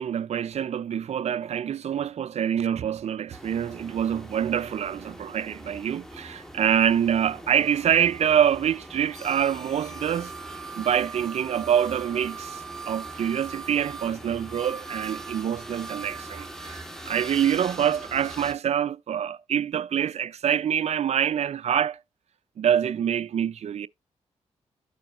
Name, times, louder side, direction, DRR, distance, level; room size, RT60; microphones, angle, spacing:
voice 1, 0.0-10.3 10.7-22.0 22.6-23.9, right 9 dB, 55° right, 0.4 m, -26 dB
sound 1, 3.3-18.5, right 3 dB, 5° left, 1.5 m, -40 dB
13.5 x 4.5 x 2.4 m
supercardioid pair, 45°, 13 cm